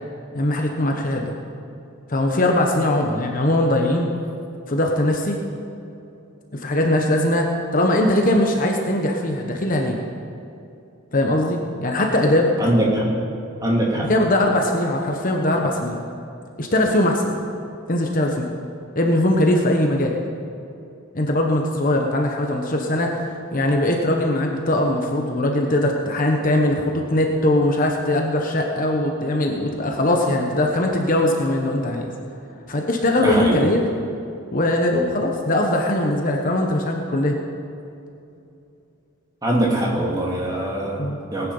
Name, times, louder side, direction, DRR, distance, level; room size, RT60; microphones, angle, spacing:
voice 1, 0.3-1.3 2.1-4.1 4.7-5.4 6.5-10.0 11.1-12.5 14.1-16.0 16.6-17.4 17.9-18.5 18.9-20.2 21.1-32.1 32.7-33.8 34.5-37.4 41.0-41.2, left 1 dB, 40° left, 1 dB, 1.1 m, -20 dB
voice 2, 12.6-13.1 13.6-14.1 33.2-33.6 39.4-41.5, right 1 dB, 15° right, -3 dB, 2.5 m, -22 dB
19.0 x 9.8 x 5.5 m, 2.7 s
head